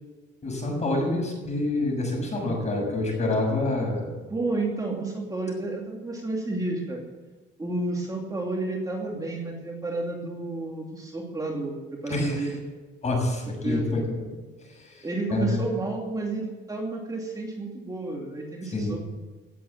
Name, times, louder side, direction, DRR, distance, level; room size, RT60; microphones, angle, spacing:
voice 1, 0.4-4.1 12.1-12.5 13.0-14.3 14.7-15.6 18.7-18.9, left 2 dB, 35° left, 1 dB, 6.8 m, -27 dB
voice 2, 4.3-7.0 7.6-11.8 12.0-12.6 13.6-14.0 15.0-19.0, right 2 dB, 15° right, -1 dB, 2.7 m, -31 dB
17.5 x 8.5 x 8.6 m, 1.3 s
cardioid pair, 130°, 20 cm